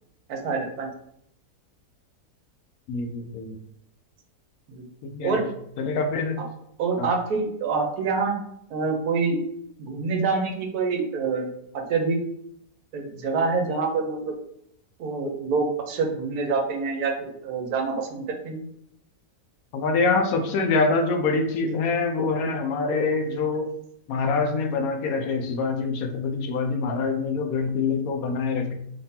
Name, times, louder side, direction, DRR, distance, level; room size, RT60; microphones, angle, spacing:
voice 1, 0.3-0.9 5.2-5.4 6.8-8.3 8.7-9.4 9.8-11.5 11.7-12.2 12.9-14.3 15.0-18.6, right 4 dB, 70° right, 3 dB, 1.3 m, -26 dB
voice 2, 2.9-3.6 5.0-5.4 5.8-6.4 7.0-7.1 19.7-23.7 24.1-28.7, left 4 dB, 70° left, 5 dB, 1.0 m, -25 dB
3.7 x 3.2 x 2.7 m, 0.71 s
omnidirectional pair, 1.8 m